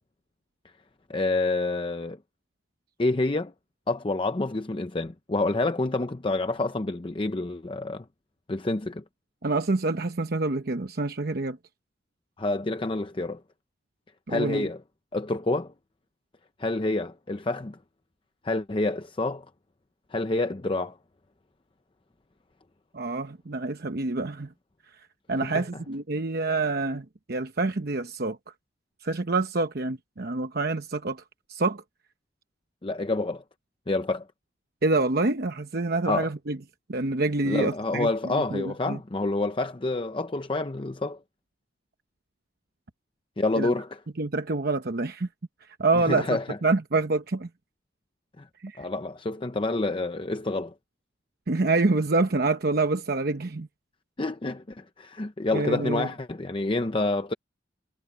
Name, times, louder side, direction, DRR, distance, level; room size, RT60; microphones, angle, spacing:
voice 1, 1.1-2.2 3.0-3.5 3.9-8.0 8.5-9.0 12.4-13.4 14.3-14.8 15.1-15.7 16.6-17.8 18.4-19.4 20.1-21.0 25.4-25.6 32.8-33.4 33.9-34.3 36.1-36.3 37.4-41.2 43.4-44.0 45.9-46.6 48.4-48.5 48.8-50.7 54.2-57.3, left 2 dB, 30° left, 0.6 m, -28 dB
voice 2, 9.4-11.6 14.3-14.7 22.9-24.5 25.3-28.4 29.0-31.2 31.5-31.8 34.8-36.6 36.9-39.0 43.6-43.7 44.2-45.3 45.8-46.3 46.6-47.5 48.6-48.8 51.5-53.7 55.5-56.1, right 3 dB, 55° right, 0.9 m, -27 dB
head